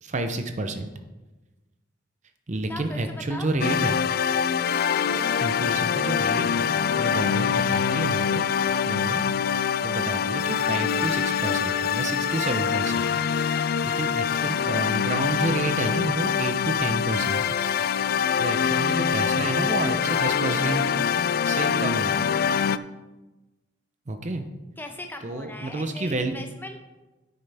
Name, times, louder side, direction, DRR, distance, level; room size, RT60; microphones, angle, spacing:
voice 1, 0.0-0.9 2.5-4.0 5.4-8.5 8.9-9.2 9.8-17.6 18.4-20.8 21.4-22.3 24.1-24.4 25.2-26.3, right 2 dB, 40° right, 7 dB, 0.6 m, -30 dB
voice 2, 2.7-3.5 13.5-14.0 24.8-26.8, left 1 dB, 10° left, 3 dB, 0.9 m, -41 dB
sound 1, 3.6-22.8, left 7 dB, 50° left, 0.3 m, -24 dB
9.7 x 9.4 x 3.5 m, 1.1 s
head